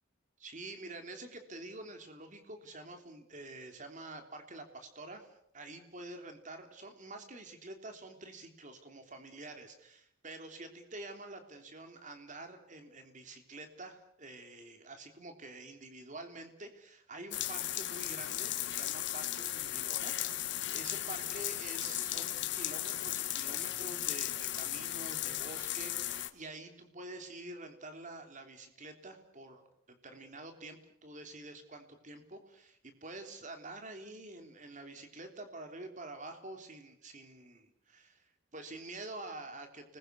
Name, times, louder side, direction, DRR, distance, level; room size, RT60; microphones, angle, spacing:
voice 1, 0.4-40.0, right 2 dB, 35° right, 6 dB, 3.3 m, -48 dB
sound 1, 17.3-26.3, left 13 dB, 55° left, 1.5 m, -36 dB
30.0 x 21.0 x 6.9 m, 0.74 s
head